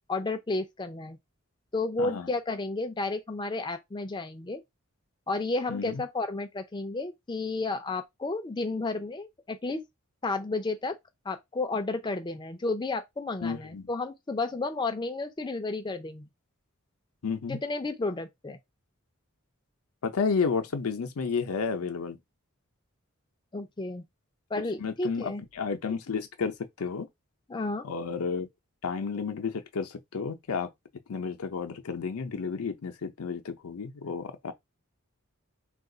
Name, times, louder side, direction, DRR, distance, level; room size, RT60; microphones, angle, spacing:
voice 1, 0.1-1.2 1.7-4.6 5.3-9.8 10.2-11.0 11.3-16.3 17.5-18.6 23.5-24.0 24.5-25.4 27.5-27.9, left 3 dB, 20° left, 0.4 m, -32 dB
voice 2, 2.0-2.3 5.7-6.0 13.4-13.9 17.2-17.6 20.0-22.2 24.8-27.1 27.8-28.5 28.8-30.7 31.1-34.5, left 5 dB, 80° left, 0.5 m, -31 dB
2.3 x 2.3 x 3.8 m
head